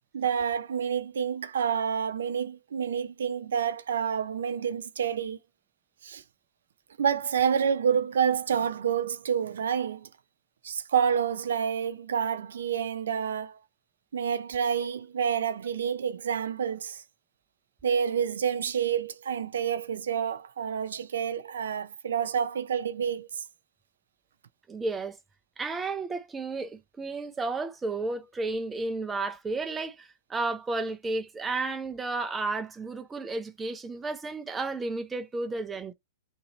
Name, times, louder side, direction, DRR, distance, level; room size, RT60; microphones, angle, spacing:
voice 1, 0.1-5.4 6.0-6.2 7.0-10.1 10.6-13.6 14.1-17.0 17.8-23.4, right 7 dB, 85° right, 0.5 m, -28 dB
voice 2, 24.7-25.2 25.6-35.9, right 3 dB, 10° right, 0.5 m, -32 dB
2.8 x 2.7 x 4.0 m
hypercardioid pair, 150°, 0 cm